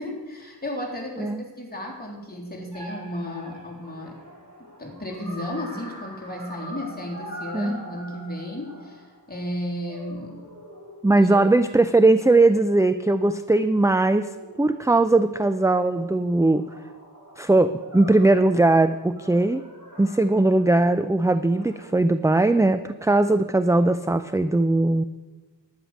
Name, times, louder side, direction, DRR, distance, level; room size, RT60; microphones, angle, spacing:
voice 1, 0.0-4.2 4.6-10.4 11.3-11.4, left 1 dB, 20° left, -2 dB, 3.3 m, -34 dB
sound 1, 2.7-9.5 9.9-13.2 14.0-15.3 15.7-20.9 21.5-21.9, equal, 45° right, 4.6 m, -44 dB
voice 2, 7.5-7.8 11.0-14.3 14.6-16.7 17.4-19.6 20.0-25.0, right 2 dB, 10° right, 11 dB, 0.3 m, -19 dB
11.0 x 9.5 x 6.4 m, 1.3 s
wide cardioid pair, 45°, 43 cm